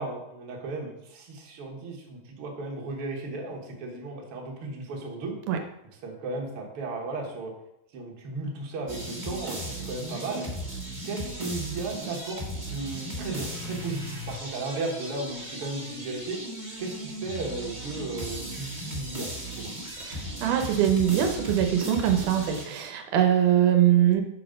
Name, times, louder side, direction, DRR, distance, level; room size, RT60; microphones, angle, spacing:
voice 1, 0.0-5.4 6.0-7.5 7.9-9.6 9.9-10.4 11.0-16.4 16.8-19.7, right 3 dB, 55° right, 0 dB, 1.8 m, -35 dB
sound 1, 8.9-22.6, equal, 30° right, 0.8 m, -37 dB
voice 2, 20.0-24.2, right 10 dB, 85° right, 5 dB, 2.3 m, -22 dB
6.5 x 5.0 x 5.0 m, 0.83 s
omnidirectional pair, 3.6 m